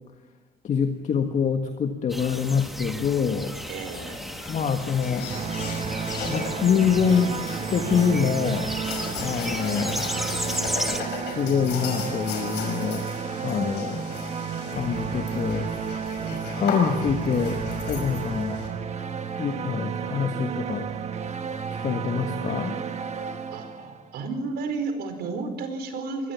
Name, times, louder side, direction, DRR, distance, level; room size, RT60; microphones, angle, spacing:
voice 1, 0.6-3.6 4.5-5.3 6.3-7.3 7.7-8.7 9.2-10.0 11.3-13.0 13.4-14.0 14.7-15.7 16.3-17.6 17.9-18.7 19.4-20.9 21.7-22.8, left 6 dB, 45° left, 5 dB, 1.7 m, -25 dB
sound 1, 2.1-11.0, equal, ahead, 1.9 m, -34 dB
sound 2, 3.4-18.7, left 5 dB, 85° left, 5.8 m, -36 dB
voice 2, 3.7-4.2 9.4-9.8 16.2-16.5 23.5-26.3, right 4 dB, 70° right, 7 dB, 4.6 m, -33 dB
sound 3, 5.3-24.2, right 6 dB, 40° right, 1.6 m, -32 dB
23.5 x 19.0 x 7.3 m, 1.3 s
cardioid pair, 110°, 17 cm